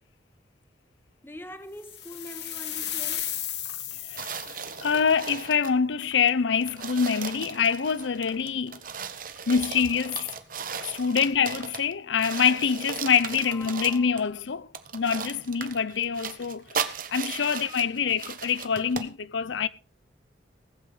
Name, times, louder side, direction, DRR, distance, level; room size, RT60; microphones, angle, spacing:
voice 1, 1.2-3.4 9.2-9.3 13.4-14.4, left 1 dB, 10° left, 1.3 m, -44 dB
sound 1, 1.9-4.9, left 11 dB, 65° left, 2.1 m, -34 dB
voice 2, 3.9-4.3 4.8-8.8 9.5-10.3 10.8-19.7, left 6 dB, 80° left, 0.6 m, -25 dB
sound 2, 4.2-5.8 6.3-6.4 6.6-11.9 12.2-14.3 14.7-19.1, right 6 dB, 50° right, 1.4 m, -37 dB
Laughter / Crowd, 4.3-6.9 7.6-7.7, right 3 dB, 65° right, 1.4 m, -50 dB
19.0 x 8.3 x 4.9 m
head